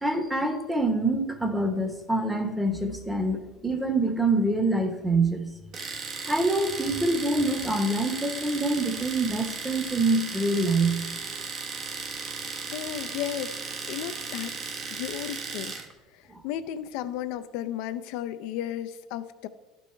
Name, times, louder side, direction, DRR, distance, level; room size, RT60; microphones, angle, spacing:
voice 1, 0.0-5.4 6.2-11.0 16.3-16.4, right 2 dB, 5° right, 7 dB, 1.1 m, -25 dB
Domestic sounds home sounds, 5.7-15.9, right 4 dB, 40° right, 1.0 m, -36 dB
voice 2, 12.7-13.6 13.9-14.6 14.9-15.8 16.1-19.5, left 11 dB, 70° left, 10 dB, 0.4 m, -34 dB
11.5 x 5.4 x 4.4 m, 1.1 s
supercardioid pair, 120°, 0 cm